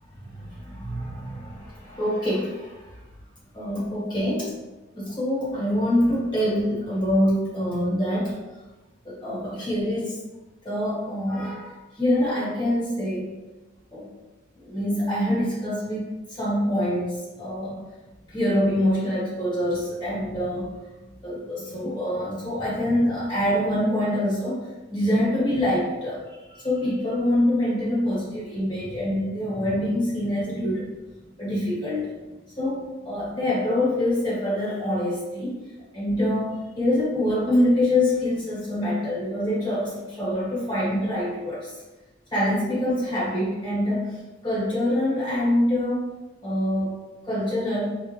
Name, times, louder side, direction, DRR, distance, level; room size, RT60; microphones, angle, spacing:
voice 1, 0.2-2.8 3.5-4.5 4.9-8.4 9.0-10.2 10.6-13.3 13.9-14.1 14.6-17.8 18.3-20.7 21.2-30.9 31.4-32.1 32.6-35.6 35.9-41.7 42.3-44.2 44.4-46.0 46.4-47.0 47.2-47.9, left 1 dB, 25° left, -7 dB, 1.4 m, -25 dB
3.6 x 2.5 x 2.9 m, 1.1 s
head